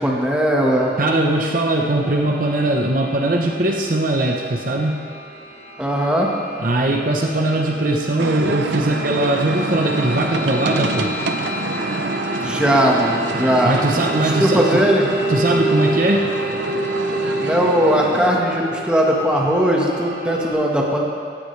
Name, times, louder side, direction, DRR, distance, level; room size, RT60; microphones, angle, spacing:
voice 1, 0.0-0.9 5.8-6.3 12.4-13.8 14.2-15.1 17.4-21.0, equal, 5° right, -2 dB, 1.6 m, -19 dB
sound 1, 0.5-20.5, right 1 dB, 35° left, 4.4 m, -29 dB
voice 2, 1.0-5.0 6.6-11.1 13.6-14.9 15.3-16.3, right 1 dB, 50° right, 1 dB, 1.0 m, -20 dB
sound 2, 8.2-18.4, right 2 dB, 80° right, 0.9 m, -27 dB
18.0 x 15.0 x 3.4 m, 2.3 s
head